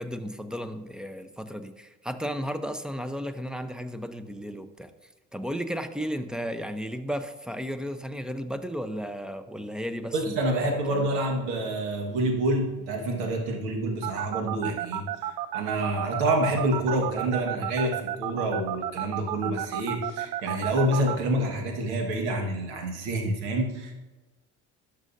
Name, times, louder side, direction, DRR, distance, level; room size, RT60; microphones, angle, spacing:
voice 1, 0.0-4.9 5.3-11.2, equal, ahead, 10 dB, 0.7 m, -34 dB
voice 2, 10.1-23.9, right 1 dB, 85° right, 3 dB, 1.6 m, -27 dB
sound 1, 14.0-21.1, right 13 dB, 65° right, 0.6 m, -31 dB
12.0 x 6.6 x 2.6 m, 1.2 s
hypercardioid pair, 65°, 34 cm